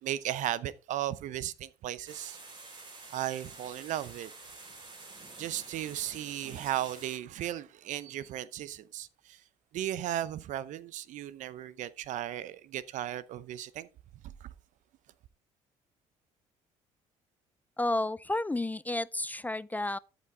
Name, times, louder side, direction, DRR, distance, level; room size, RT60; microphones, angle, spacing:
voice 1, 0.0-2.4 3.1-4.3 5.4-9.4 9.7-13.9 14.2-14.5, right 12 dB, 70° right, 0.7 m, -36 dB
sound 1, 2.1-7.2, right 3 dB, 35° right, 4.2 m, -49 dB
voice 2, 17.8-20.0, left 2 dB, 10° left, 0.4 m, -31 dB
13.0 x 5.1 x 3.6 m
supercardioid pair, 70°, 13 cm